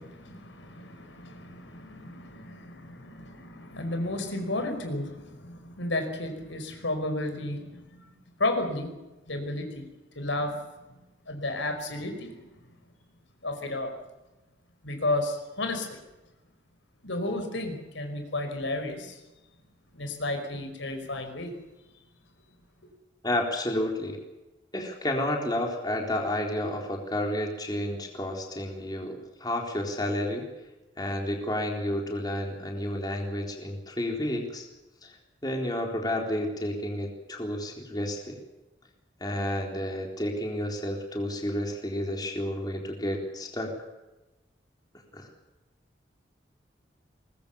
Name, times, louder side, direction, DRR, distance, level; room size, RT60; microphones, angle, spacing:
voice 1, 0.0-8.0 8.4-8.9 9.3-9.9 10.1-10.6 11.3-12.4 13.4-13.9 14.8-16.0 17.0-19.2 19.9-21.5, left 2 dB, 90° left, 6 dB, 5.2 m, -32 dB
voice 2, 23.2-24.2 24.7-30.5 31.0-34.7 35.0-35.2 35.4-38.4 39.2-43.7 45.1-45.3, left 1 dB, 20° left, 1 dB, 3.9 m, -31 dB
23.0 x 21.0 x 7.0 m, 1.1 s
head